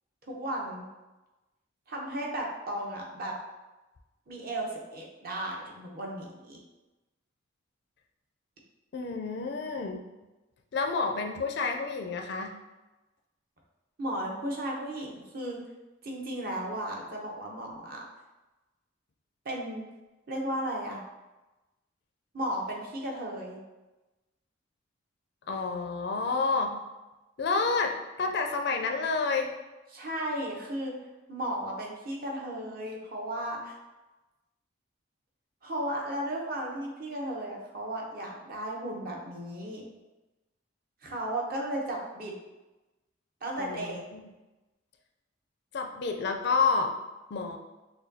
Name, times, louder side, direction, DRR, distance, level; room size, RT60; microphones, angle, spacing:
voice 1, 0.3-0.8 1.9-3.3 4.3-6.6 14.0-15.6 16.0-18.0 19.4-19.9 20.3-21.0 22.3-23.6 29.9-31.0 31.3-33.7 35.6-39.9 41.0-42.4 43.4-44.0, right 1 dB, 50° right, -1 dB, 0.8 m, -35 dB
voice 2, 8.9-10.0 10.7-12.5 25.5-26.8 27.4-29.5 43.6-44.2 45.7-46.9 47.3-47.6, left 4 dB, 55° left, 3 dB, 0.4 m, -29 dB
6.2 x 2.2 x 2.7 m, 1.1 s
head